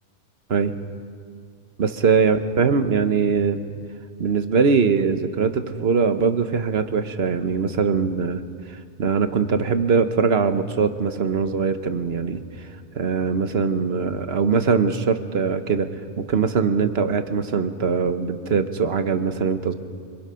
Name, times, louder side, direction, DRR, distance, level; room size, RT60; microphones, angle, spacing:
voice 1, 1.8-3.6 4.2-8.4 8.7-12.7 12.9-15.9 16.2-19.7, right 5 dB, 65° right, 9 dB, 1.3 m, -22 dB
25.5 x 25.5 x 5.7 m, 2.2 s
omnidirectional pair, 1.2 m